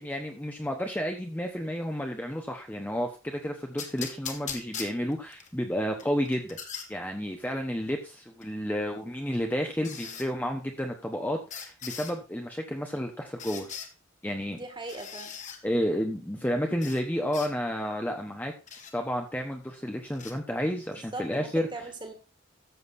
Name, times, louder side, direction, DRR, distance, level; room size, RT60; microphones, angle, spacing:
voice 1, 0.0-6.6 6.9-13.7 14.2-14.6 15.6-18.5 18.9-21.7, equal, 10° left, 3 dB, 1.0 m, -31 dB
sound 1, 3.8-5.5 6.0-6.9 8.4-8.5 9.8-10.3 11.5-12.1 13.4-13.9 14.9-15.6 16.8-17.0 17.3-17.5 18.7-18.9 20.1-20.3, left 7 dB, 35° left, 1.7 m, -39 dB
voice 2, 14.5-15.3 20.2-20.3 20.9-22.1, right 2 dB, 20° right, 5 dB, 2.1 m, -40 dB
13.5 x 7.6 x 2.7 m, 0.30 s
head